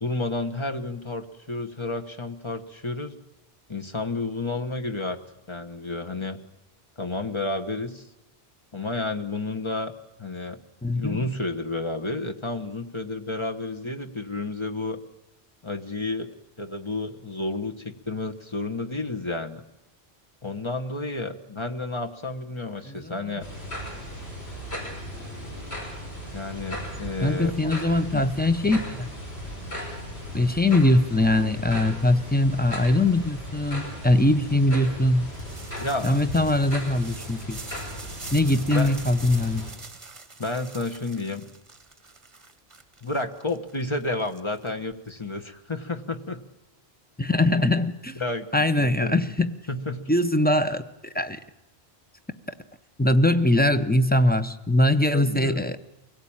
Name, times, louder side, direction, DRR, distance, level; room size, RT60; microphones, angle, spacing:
voice 1, 0.0-3.2 3.7-5.2 5.5-6.4 7.0-8.1 8.7-9.9 10.2-10.6 10.9-15.0 15.6-16.3 16.6-19.6 20.4-23.5 26.3-27.7 28.1-28.2 35.8-36.2 38.7-38.9 40.4-41.5 43.0-46.4 48.2-49.2 49.7-50.1 55.1-55.6, left 2 dB, 30° left, 5 dB, 1.2 m, -31 dB
voice 2, 10.8-11.2 22.9-23.2 27.2-29.1 30.3-35.3 36.0-37.6 38.3-39.7 47.2-48.2 48.5-49.5 50.1-51.4 53.0-55.8, left 1 dB, 10° left, 9 dB, 0.8 m, -22 dB
sound 1, 23.4-39.7, equal, 90° left, 6.2 m, -37 dB
sound 2, 35.2-45.1, right 3 dB, 30° right, 1.1 m, -44 dB
24.0 x 17.0 x 8.8 m, 0.96 s
omnidirectional pair, 1.0 m